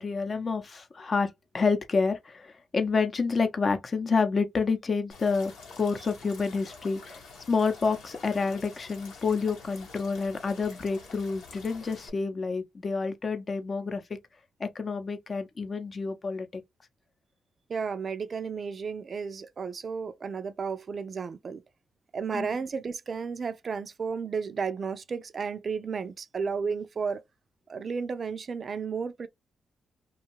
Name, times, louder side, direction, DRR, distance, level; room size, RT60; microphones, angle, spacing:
voice 1, 0.0-7.2 7.5-14.2 14.6-16.6 22.3-22.5, left 4 dB, 45° left, 0.7 m, -29 dB
sound 1, 5.1-12.1, left 4 dB, 90° left, 0.9 m, -48 dB
voice 2, 17.7-21.6 22.1-27.2 27.7-29.3, right 5 dB, 50° right, 0.4 m, -33 dB
2.6 x 2.3 x 2.9 m
cardioid pair, 65°, 0 cm